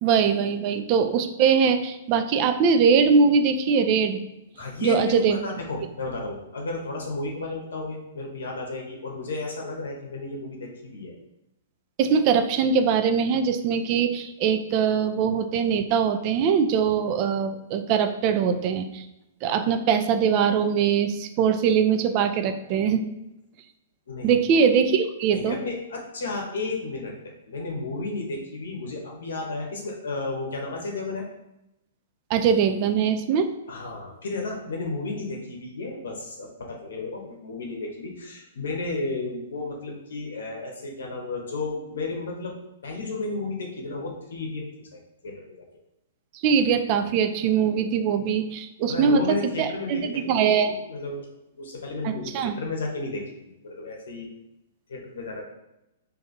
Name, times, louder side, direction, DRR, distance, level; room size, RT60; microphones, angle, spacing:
voice 1, 0.0-4.2 4.8-5.4 12.0-19.1 19.4-23.1 24.2-25.6 32.3-33.5 46.4-50.8 52.0-52.6, right 6 dB, 40° right, 8 dB, 0.3 m, -22 dB
voice 2, 4.6-11.1 24.1-24.3 25.3-27.1 27.5-31.3 33.7-45.7 48.9-51.3 51.5-54.3 54.9-55.4, left 3 dB, 70° left, 0 dB, 0.8 m, -33 dB
2.7 x 2.4 x 4.0 m, 0.90 s
figure-of-eight pair, 115°, 0 cm